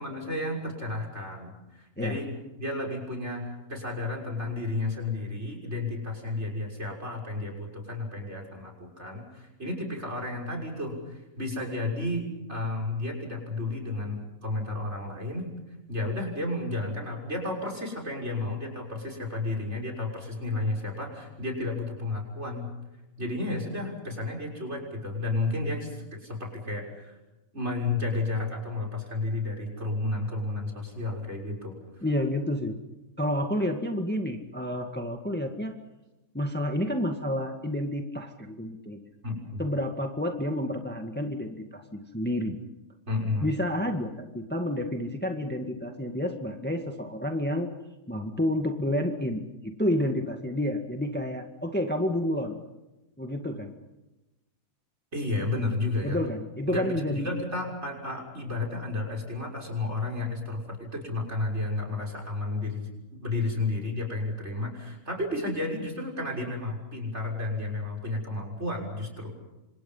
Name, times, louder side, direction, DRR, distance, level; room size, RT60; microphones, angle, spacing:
voice 1, 0.0-2.3 2.6-15.5 15.9-22.7 23.2-27.2 27.5-31.8 39.2-39.6 43.1-43.5 55.1-56.2 56.7-62.9 63.2-69.3, left 2 dB, 50° right, 3 dB, 6.8 m, -32 dB
voice 2, 32.0-32.8 33.2-35.7 36.3-39.0 39.6-42.6 43.4-47.7 48.1-52.5 53.2-53.7 56.0-57.3, left 1 dB, 5° left, 4 dB, 1.8 m, -30 dB
29.0 x 26.5 x 5.7 m, 1.0 s
omnidirectional pair, 1.5 m